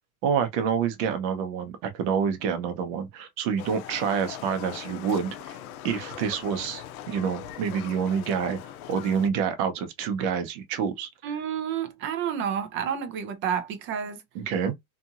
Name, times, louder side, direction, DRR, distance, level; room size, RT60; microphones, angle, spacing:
voice 1, 0.2-5.6 5.8-8.6 8.9-11.1 14.3-14.7, right 7 dB, 50° right, 0.9 m, -27 dB
Livestock farm animals working animals, 3.6-9.3, left 11 dB, 85° left, 0.6 m, -41 dB
voice 2, 11.2-14.2, right 8 dB, 30° right, 0.5 m, -30 dB
2.9 x 2.5 x 2.4 m
supercardioid pair, 145°, 42 cm